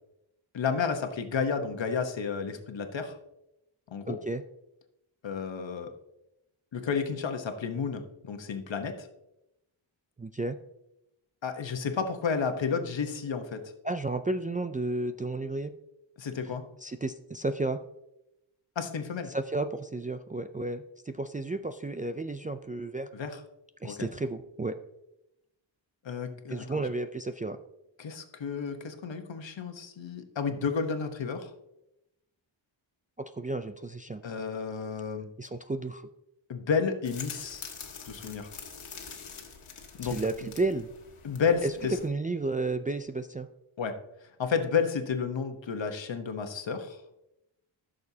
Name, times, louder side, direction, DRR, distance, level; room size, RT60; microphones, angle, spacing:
voice 1, 0.5-3.2 3.9-4.2 5.2-5.9 6.7-9.1 11.4-13.7 16.2-16.6 18.7-19.3 23.1-23.3 23.8-24.1 26.0-26.8 28.0-31.5 34.2-35.3 36.5-37.6 38.0-38.5 39.9-40.5 41.2-42.0 43.8-43.9 44.4-47.0, left 6 dB, 65° left, 6 dB, 1.2 m, -31 dB
voice 2, 4.1-4.4 10.2-10.6 13.8-15.7 16.8-17.8 19.3-23.1 23.8-24.8 26.5-27.6 33.2-34.2 35.4-36.1 40.0-40.9 41.6-41.7 42.0-43.5, right 2 dB, 20° right, 8 dB, 0.3 m, -32 dB
sound 1, 37.0-42.1, left 6 dB, 90° left, 1.5 m, -45 dB
14.5 x 6.6 x 2.8 m, 0.87 s
wide cardioid pair, 95°, 48 cm